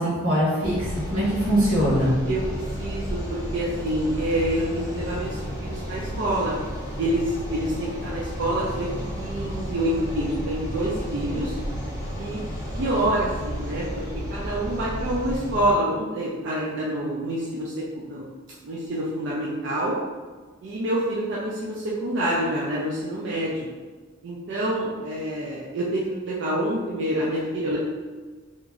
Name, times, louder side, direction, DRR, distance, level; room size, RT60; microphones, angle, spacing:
voice 1, 0.0-2.2, equal, 85° right, -7 dB, 1.3 m, -22 dB
sound 1, 0.6-15.7, equal, 10° left, 0.7 m, -32 dB
voice 2, 2.3-6.6 7.0-8.9 9.2-11.6 12.2-12.4 12.7-18.2 18.6-20.0 20.6-23.5 24.2-27.8, right 1 dB, 55° right, -6 dB, 0.4 m, -27 dB
2.9 x 2.5 x 2.4 m, 1.4 s
head